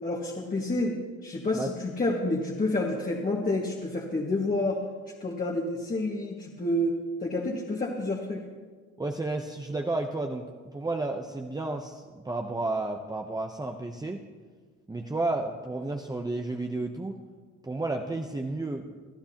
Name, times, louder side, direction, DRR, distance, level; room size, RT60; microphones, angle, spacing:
voice 1, 0.0-4.8 5.2-8.4, left 2 dB, 30° left, -2 dB, 1.8 m, -29 dB
voice 2, 9.0-14.2 14.9-17.2 17.6-18.9, right 2 dB, 15° right, 2 dB, 0.8 m, -32 dB
23.5 x 12.5 x 2.9 m, 1.5 s
cardioid pair, 90°, 30 cm